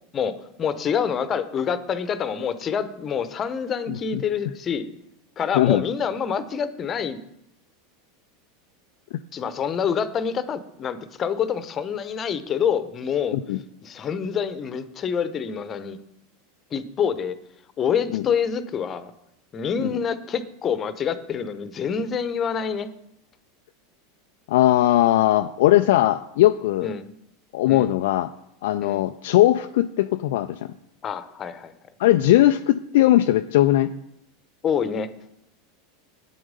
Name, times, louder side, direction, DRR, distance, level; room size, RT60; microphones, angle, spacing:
voice 1, 0.1-4.9 5.4-7.2 9.3-13.4 13.8-16.0 16.7-17.4 17.8-19.1 19.5-22.9 26.8-27.1 27.7-27.9 28.8-29.1 31.0-31.7 34.6-35.1, left 7 dB, 30° left, 13 dB, 0.9 m, -26 dB
voice 2, 3.9-4.2 5.5-5.8 13.3-13.6 18.1-18.2 19.8-20.0 24.5-26.9 27.5-28.3 28.6-30.7 32.0-33.9, left 14 dB, 55° left, 8 dB, 0.3 m, -19 dB
9.3 x 7.9 x 5.3 m, 0.79 s
figure-of-eight pair, 80°, 0 cm